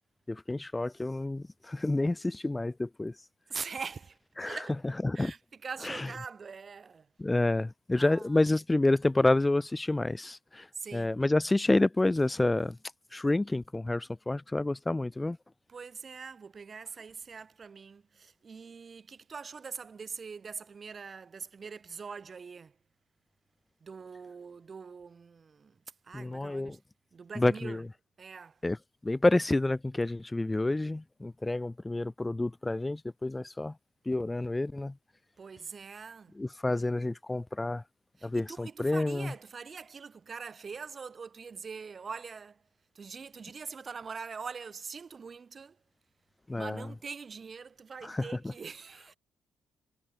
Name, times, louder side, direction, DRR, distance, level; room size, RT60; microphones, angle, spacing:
voice 1, 0.3-3.2 4.4-4.6 5.0-5.3 5.8-6.1 7.2-10.7 10.9-12.8 13.1-15.4 26.1-26.8 27.4-27.9 28.6-28.8 29.0-33.7 34.1-34.9 36.4-37.8 38.2-39.3 46.5-46.8 48.0-48.3, left 2 dB, 15° left, 0.7 m, -29 dB
voice 2, 3.5-4.7 5.1-7.1 8.0-8.4 10.7-11.1 15.7-22.8 23.8-25.8 26.0-26.8 27.1-27.8 28.2-28.6 35.4-36.4 36.7-36.9 38.2-42.6 42.9-45.8 46.6-49.2, right 5 dB, 40° right, 2.9 m, -43 dB
cardioid pair, 90°, 0 cm